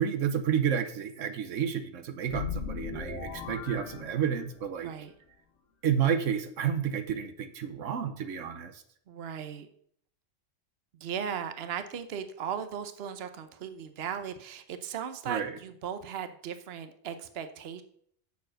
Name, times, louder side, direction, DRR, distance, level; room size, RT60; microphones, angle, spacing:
voice 1, 0.0-4.9 5.8-8.8 15.3-15.5, right 8 dB, 85° right, 9 dB, 1.2 m, -30 dB
sound 1, 2.2-4.8, left 6 dB, 90° left, 1.5 m, -38 dB
voice 2, 9.1-9.7 11.0-17.8, right 8 dB, 60° right, 10 dB, 1.0 m, -37 dB
7.2 x 6.9 x 6.3 m, 0.64 s
omnidirectional pair, 1.3 m